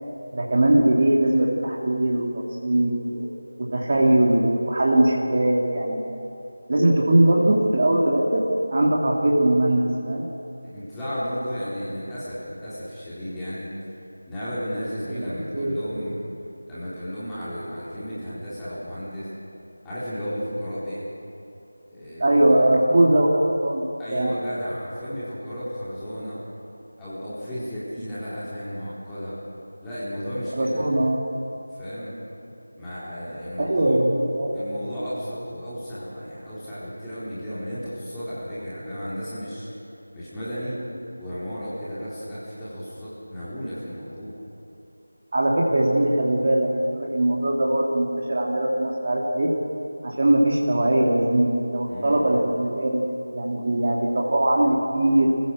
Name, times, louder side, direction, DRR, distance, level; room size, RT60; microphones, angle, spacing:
voice 1, 0.3-2.3 2.6-3.3 3.6-6.0 6.7-10.3 15.1-15.8 22.2-24.3 30.6-31.2 33.6-34.6 45.3-49.5 50.0-53.1 53.3-55.3, right 1 dB, 40° right, -3 dB, 2.6 m, -21 dB
voice 2, 10.6-13.7 14.3-16.2 16.7-19.3 19.8-21.0 21.9-22.6 24.0-26.4 27.0-29.4 29.8-30.8 31.7-32.1 32.8-34.0 34.5-39.7 40.1-40.8 41.2-44.3 51.9-52.2, equal, 5° left, -13 dB, 3.9 m, -33 dB
26.0 x 16.0 x 6.4 m, 2.8 s
figure-of-eight pair, 170°, 0 cm